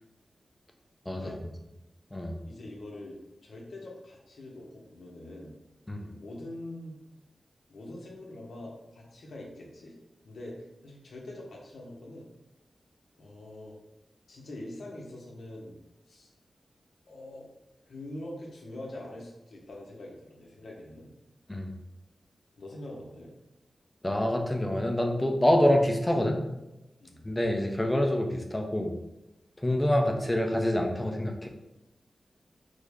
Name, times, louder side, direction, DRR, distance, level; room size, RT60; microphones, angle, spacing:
voice 1, 2.4-5.5 6.0-6.9 7.7-10.0 10.2-12.3 13.2-13.7 14.3-15.8 16.1-16.3 17.1-17.5 17.9-21.1 22.6-23.3 27.0-27.2, left 1 dB, 90° left, -1 dB, 0.7 m, -44 dB
voice 2, 24.0-26.4 27.2-28.9 29.6-31.5, left 1 dB, 15° left, 2 dB, 0.5 m, -26 dB
3.5 x 2.0 x 3.4 m, 0.96 s
wide cardioid pair, 90°, 0 cm